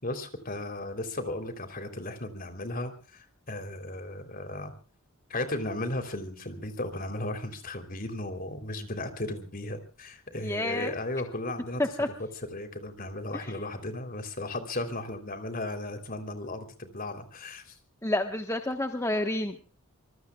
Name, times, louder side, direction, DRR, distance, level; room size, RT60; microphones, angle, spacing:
voice 1, 0.0-4.7 5.3-11.8 12.5-17.7, left 1 dB, 40° left, 7 dB, 3.4 m, -35 dB
voice 2, 10.4-10.9 11.8-12.1 13.3-13.5 18.0-19.8, left 1 dB, 15° left, 5 dB, 1.2 m, -29 dB
25.5 x 23.0 x 2.4 m, 0.37 s
head